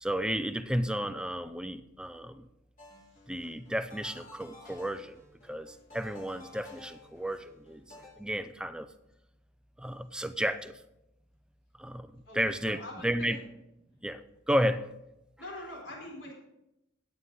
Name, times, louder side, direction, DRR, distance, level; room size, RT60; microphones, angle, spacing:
voice 1, 0.0-2.4 3.3-5.2 5.5-5.7 5.9-7.8 8.2-8.9 9.8-10.7 11.8-12.0 12.3-13.4 14.0-14.2 14.5-14.8, equal, 5° right, 11 dB, 0.5 m, -32 dB
sound 1, 2.8-8.1, left 2 dB, 40° left, 3.5 m, -53 dB
voice 2, 12.3-13.4 15.4-16.3, left 1 dB, 70° left, -1 dB, 4.4 m, -43 dB
14.0 x 9.5 x 3.9 m, 0.87 s
head